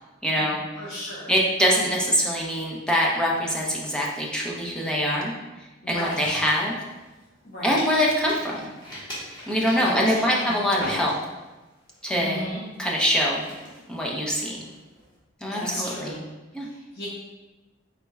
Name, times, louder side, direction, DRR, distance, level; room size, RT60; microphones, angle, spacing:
voice 1, 0.2-0.6 1.3-5.3 5.9-6.7 7.6-8.7 9.5-11.1 12.0-12.4 12.8-13.5 13.9-14.6 15.4-16.1 16.5-16.7, equal, 5° left, -3 dB, 0.7 m, -24 dB
voice 2, 0.8-1.3 5.8-6.4 7.4-7.8 9.8-10.0 10.2-10.5 12.2-12.6 15.4-16.3 16.6-17.1, equal, 55° left, -7 dB, 0.9 m, -35 dB
sound 1, 5.9-7.4 7.8-11.6 11.9-12.2 12.7-15.1, left 1 dB, 25° left, 1.4 m, -40 dB
4.4 x 4.1 x 2.3 m, 1.1 s
head